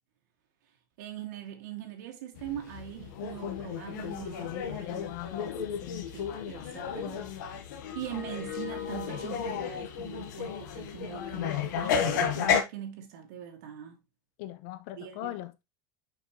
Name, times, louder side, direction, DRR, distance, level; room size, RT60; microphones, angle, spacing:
voice 1, 1.0-5.1 6.1-7.5 7.9-14.0 15.0-15.4, right 10 dB, 80° right, 2.2 m, -42 dB
sound 1, 2.4-12.6, left 7 dB, 85° left, 1.4 m, -33 dB
voice 2, 4.8-5.5 5.8-6.1 14.4-15.6, left 15 dB, 60° left, 0.9 m, -40 dB
6.7 x 5.4 x 3.1 m
supercardioid pair, 150°, 10 cm